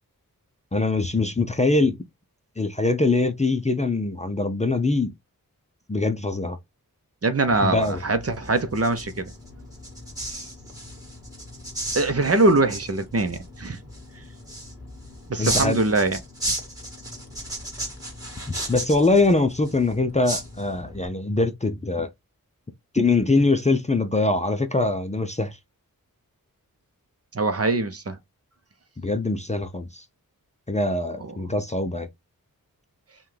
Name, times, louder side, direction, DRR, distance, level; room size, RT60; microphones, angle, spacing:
voice 1, 0.7-2.0 2.6-5.1 5.9-6.6 7.6-8.0 15.4-15.8 18.7-22.1 22.9-25.6 29.0-30.0 30.7-32.1, left 2 dB, 20° left, 0.5 m, -23 dB
voice 2, 7.2-9.3 11.9-13.8 15.3-16.2 27.3-28.2 31.2-31.4, right 2 dB, 40° right, 0.7 m, -23 dB
sound 1, 7.5-21.1, right 1 dB, 10° right, 2.1 m, -35 dB
5.5 x 2.3 x 3.2 m
wide cardioid pair, 70°, 36 cm